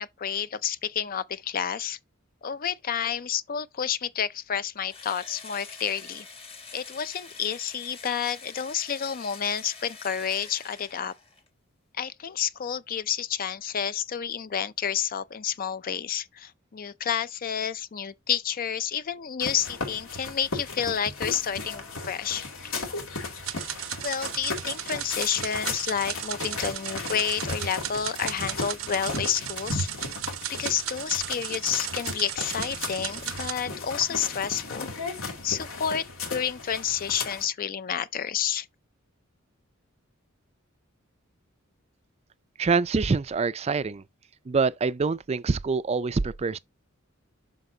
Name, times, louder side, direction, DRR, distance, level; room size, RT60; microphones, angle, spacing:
voice 1, 0.0-2.0 2.4-6.3 6.7-11.1 12.0-22.4 22.7-22.9 24.0-29.9 30.5-34.9 35.2-38.7, left 8 dB, 45° left, 0.5 m, -30 dB
Engine / Drill, 4.9-11.5, left 4 dB, 30° left, 1.1 m, -46 dB
sound 1, 19.4-37.5, left 3 dB, 80° left, 2.5 m, -36 dB
sound 2, 23.4-33.5, right 12 dB, 80° right, 0.7 m, -36 dB
voice 2, 42.6-44.0 44.5-46.6, right 4 dB, 30° right, 0.4 m, -25 dB
7.8 x 5.9 x 2.8 m
head